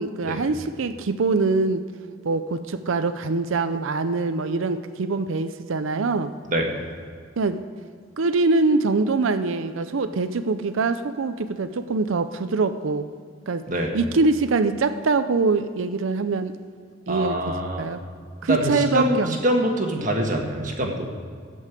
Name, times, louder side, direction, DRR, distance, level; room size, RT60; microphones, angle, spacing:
voice 1, 0.0-1.8 2.2-6.3 7.4-7.6 8.2-13.1 13.5-13.6 13.9-16.5 17.1-17.4 17.8-18.0 18.4-19.4, right 3 dB, 80° right, 10 dB, 0.5 m, -23 dB
voice 2, 17.1-17.9 18.5-21.1, right 1 dB, 40° right, 1 dB, 1.6 m, -24 dB
14.0 x 5.4 x 8.2 m, 2.1 s
head